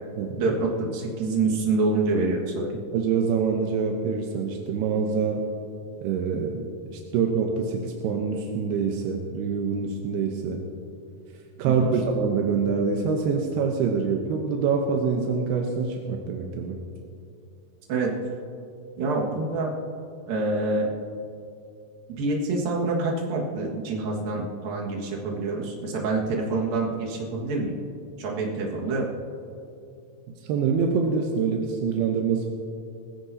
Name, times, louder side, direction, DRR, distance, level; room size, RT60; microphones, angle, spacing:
voice 1, 0.4-2.7 11.6-11.9 17.9-18.1 19.0-19.7 20.3-20.9 22.2-27.7 28.2-29.1, right 3 dB, 65° right, -2 dB, 3.4 m, -26 dB
voice 2, 2.9-5.4 6.0-6.7 7.1-10.6 11.6-16.8 30.4-32.5, right 5 dB, 85° right, 2 dB, 2.9 m, -25 dB
20.5 x 15.0 x 2.8 m, 2.5 s
omnidirectional pair, 4.6 m